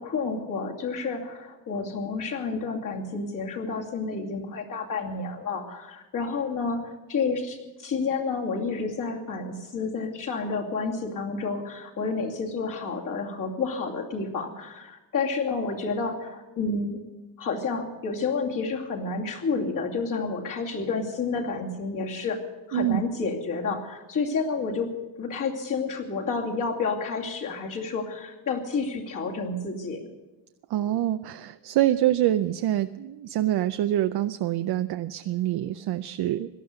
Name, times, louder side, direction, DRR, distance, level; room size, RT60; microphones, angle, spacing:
voice 1, 0.0-17.0 17.4-22.4 22.7-24.9 25.2-30.1, left 4 dB, 50° left, -1 dB, 2.6 m, -30 dB
voice 2, 30.7-36.5, right 13 dB, 65° right, 9 dB, 0.6 m, -25 dB
17.5 x 12.5 x 6.7 m, 1.1 s
cardioid pair, 160°, 42 cm